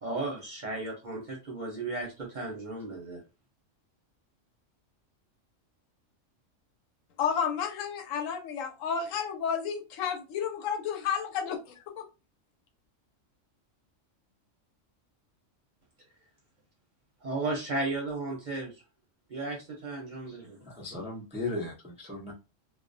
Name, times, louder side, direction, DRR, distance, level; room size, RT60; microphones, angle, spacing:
voice 1, 0.0-3.2 17.2-18.8 19.3-20.6, right 2 dB, 50° right, 0.6 m, -34 dB
voice 2, 7.2-12.0, left 7 dB, 85° left, 1.0 m, -31 dB
voice 3, 20.7-22.3, left 2 dB, 10° right, 0.3 m, -36 dB
2.3 x 2.1 x 2.5 m
omnidirectional pair, 1.3 m